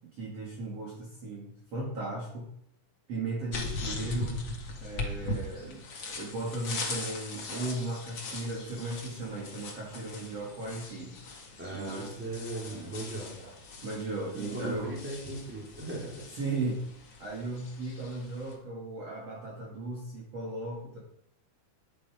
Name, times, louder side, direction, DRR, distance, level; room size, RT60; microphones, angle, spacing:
voice 1, 0.2-2.5 3.1-4.4 4.8-11.2 11.7-12.1 12.5-12.9 13.2-13.5 13.8-14.9 16.4-16.8 17.2-21.0, right 2 dB, 45° right, -3 dB, 3.2 m, -36 dB
sound 1, 3.5-18.5, left 2 dB, 40° left, 2.1 m, -40 dB
voice 2, 11.6-13.3 14.3-16.2, right 2 dB, 5° right, -4 dB, 3.7 m, -38 dB
11.0 x 10.0 x 5.0 m, 0.70 s
omnidirectional pair, 4.1 m